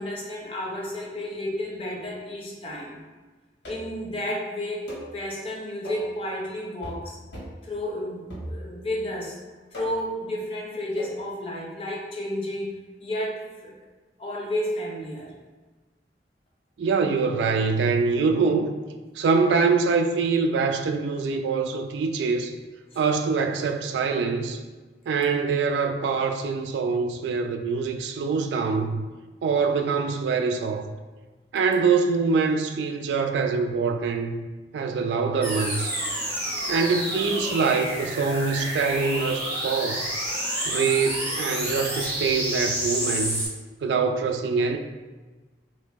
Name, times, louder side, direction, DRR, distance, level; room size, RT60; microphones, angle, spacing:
voice 1, 0.0-3.0 3.6-7.2 7.6-9.4 9.7-13.7 14.2-15.3 22.9-23.0, left 1 dB, 30° left, -3 dB, 0.7 m, -32 dB
sound 1, 3.6-4.0 4.9-5.1 5.8-6.1 6.8-7.1 7.3-7.6 8.3-8.9 9.7-10.1 11.0-11.2, equal, 80° left, 1.5 m, -38 dB
voice 2, 16.8-18.8 19.2-22.5 23.0-24.6 25.1-29.0 29.4-30.8 31.5-34.5 34.7-35.9 36.7-40.1 40.7-43.4 43.8-44.8, right 4 dB, 80° right, 5 dB, 0.3 m, -24 dB
sound 2, 35.4-43.5, right 1 dB, 10° left, 1.4 m, -29 dB
2.9 x 2.8 x 3.4 m, 1.3 s
head